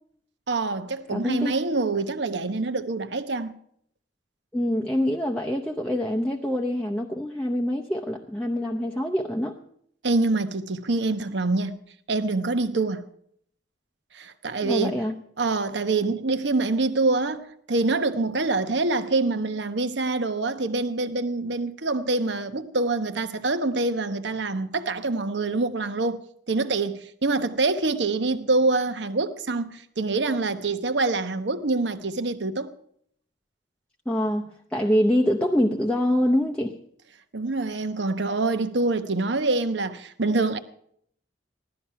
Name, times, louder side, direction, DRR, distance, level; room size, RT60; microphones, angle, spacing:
voice 1, 0.5-3.5 10.0-11.8 12.1-13.0 14.1-15.0 15.4-26.2 26.5-32.7 37.3-40.6, right 3 dB, 70° right, 1.0 m, -25 dB
voice 2, 1.1-1.5 4.5-9.6 14.6-15.2 34.1-36.8, equal, 5° left, 0.7 m, -25 dB
16.0 x 12.5 x 5.7 m
head